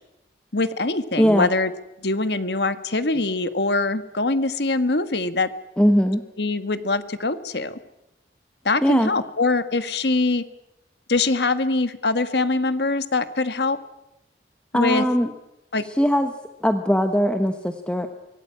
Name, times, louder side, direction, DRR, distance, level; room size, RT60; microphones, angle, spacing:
voice 1, 0.5-1.7 2.0-5.5 6.4-7.8 8.6-10.4 11.1-13.8 14.7-15.0 15.7-15.8, left 3 dB, 75° left, 11 dB, 1.5 m, -23 dB
voice 2, 1.2-1.5 5.8-6.2 8.8-9.1 14.7-15.3 15.9-16.3 16.6-18.1, equal, 5° left, 6 dB, 1.0 m, -20 dB
24.5 x 18.0 x 8.8 m, 0.93 s
head